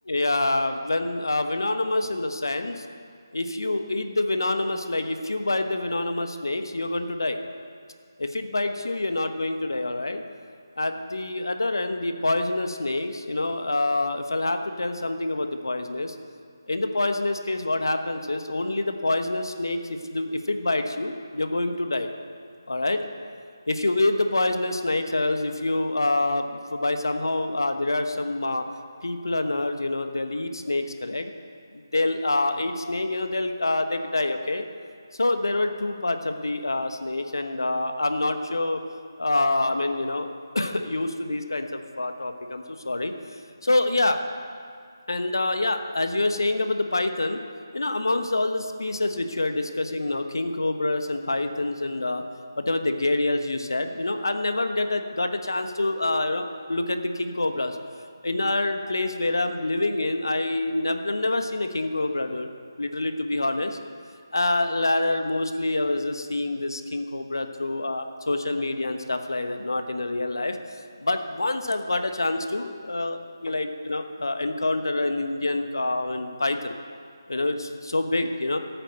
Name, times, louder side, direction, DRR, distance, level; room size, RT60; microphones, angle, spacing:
voice 1, 0.1-2.8 3.3-7.4 8.2-10.2 10.8-16.1 16.7-22.1 22.7-23.0 23.7-28.6 29.0-31.3 31.7-34.6 35.2-38.8 39.2-40.3 40.5-44.2 45.1-47.4 47.7-52.2 52.6-57.8 58.2-62.5 62.8-63.8 64.3-76.8 77.3-78.6, left 2 dB, 70° left, 7 dB, 1.3 m, -26 dB
14.0 x 9.2 x 6.6 m, 2.2 s
figure-of-eight pair, 155°, 2 cm